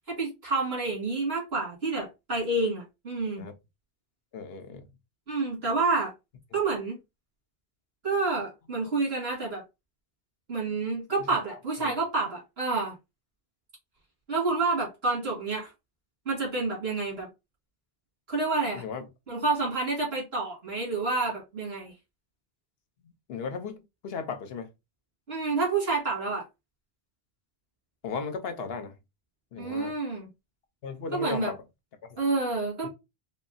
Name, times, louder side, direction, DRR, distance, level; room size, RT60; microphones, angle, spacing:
voice 1, 0.1-3.4 5.3-6.1 6.5-7.0 8.0-9.6 10.5-12.9 14.3-15.7 16.3-17.3 18.3-18.8 19.3-21.9 25.3-26.5 29.6-30.3 31.1-31.5 32.2-32.9, right 3 dB, 80° right, 2.2 m, -28 dB
voice 2, 4.3-4.8 11.3-11.6 11.8-12.0 18.7-19.0 23.3-24.7 28.0-28.9 29.5-29.9 30.8-31.6 32.8-32.9, left 5 dB, 75° left, 1.0 m, -36 dB
5.4 x 2.0 x 2.6 m
omnidirectional pair, 1.0 m